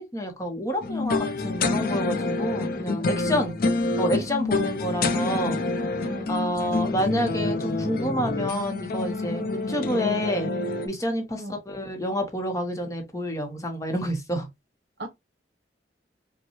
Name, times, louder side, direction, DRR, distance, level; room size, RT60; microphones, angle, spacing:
voice 1, 0.0-3.5 4.0-5.6 6.3-10.5 10.8-14.5, equal, 20° left, 0.9 m, -28 dB
sound 1, 0.8-10.9, left 3 dB, 55° left, 0.6 m, -27 dB
voice 2, 3.2-3.5 4.5-4.7 6.0-6.3 9.4-9.5 11.4-11.6 15.0-15.1, right 1 dB, 70° right, 1.1 m, -37 dB
5.3 x 2.2 x 3.0 m
head